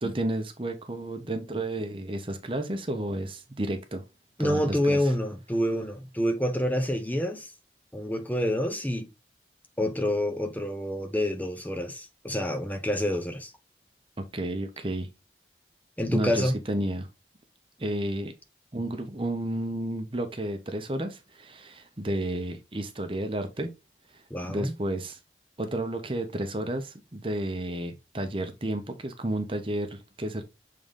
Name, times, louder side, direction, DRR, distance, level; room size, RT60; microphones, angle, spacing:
voice 1, 0.0-4.0 4.4-5.1 14.3-15.1 16.1-17.1 17.8-18.3 18.7-23.7 24.1-24.2 24.5-25.2 25.6-30.4, right 1 dB, 30° right, 0.9 m, -31 dB
voice 2, 4.4-7.5 7.9-9.1 9.8-13.5 16.0-16.5 24.3-24.7, equal, 10° left, 0.8 m, -27 dB
7.1 x 3.9 x 3.6 m
head